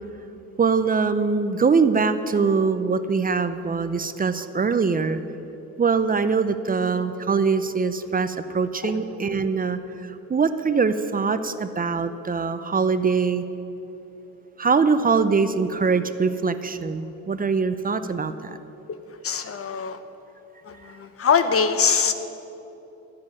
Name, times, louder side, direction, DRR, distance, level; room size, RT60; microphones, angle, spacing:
voice 1, 0.6-5.2 5.8-13.4 14.6-18.5, right 5 dB, 30° right, 11 dB, 0.7 m, -23 dB
voice 2, 19.2-20.0 20.7-22.1, left 6 dB, 50° left, 10 dB, 1.1 m, -22 dB
12.5 x 7.7 x 9.7 m, 3.0 s
cardioid pair, 90°, 30 cm